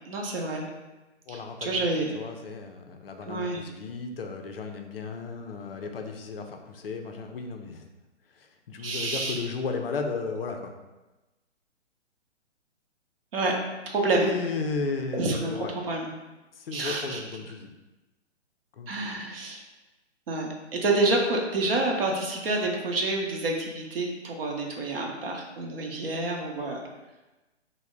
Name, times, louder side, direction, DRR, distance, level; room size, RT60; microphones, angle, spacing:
voice 1, 0.1-0.7 1.3-2.1 3.2-3.6 8.8-9.4 13.3-13.5 13.9-14.3 15.1-16.1 16.7-17.2 18.9-19.6 20.3-26.8, right 2 dB, 50° right, 0 dB, 0.7 m, -28 dB
voice 2, 1.3-1.9 2.2-7.9 8.3-10.7 14.1-15.7 16.5-17.7 18.7-19.2, left 4 dB, 55° left, 4 dB, 0.4 m, -34 dB
3.2 x 2.1 x 3.7 m, 1.1 s
figure-of-eight pair, 135°, 36 cm